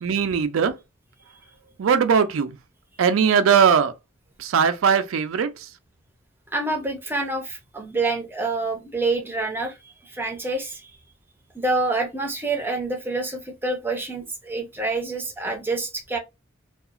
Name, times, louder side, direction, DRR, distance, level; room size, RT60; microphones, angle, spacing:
voice 1, 0.0-0.7 1.8-2.5 3.0-3.9 4.4-5.5, right 6 dB, 85° right, 0.4 m, -19 dB
voice 2, 6.5-10.9 11.5-16.2, right 3 dB, 10° right, 0.6 m, -27 dB
2.7 x 2.3 x 2.4 m
head